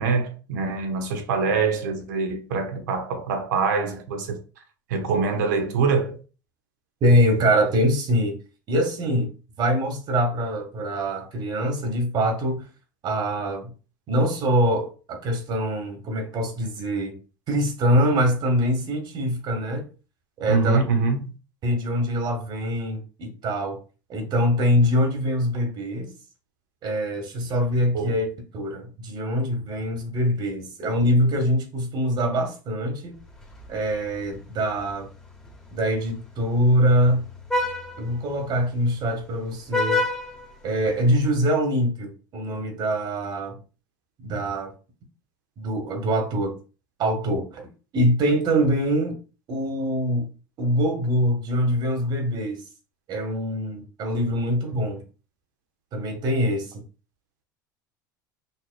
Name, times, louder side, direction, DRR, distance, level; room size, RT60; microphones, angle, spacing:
voice 1, 0.0-4.4 4.9-6.2 20.5-21.3 27.9-28.1, right 4 dB, 75° right, 1.1 m, -24 dB
voice 2, 7.0-8.4 8.7-9.3 9.6-12.6 13.0-13.7 14.1-17.2 17.5-19.9 20.4-20.8 21.6-23.8 24.1-26.1 26.8-28.3 28.5-33.2 33.7-35.1 35.7-37.3 38.0-40.0 40.6-43.6 44.2-44.7 45.6-46.6 47.0-47.6 47.9-49.2 49.5-50.3 50.6-52.6 53.1-55.0 55.9-56.8, equal, 45° right, 1.5 m, -24 dB
Vehicle horn car horn honking, 33.2-41.3, left 2 dB, 5° left, 1.4 m, -32 dB
5.6 x 2.9 x 2.3 m
hypercardioid pair, 80°, 10 cm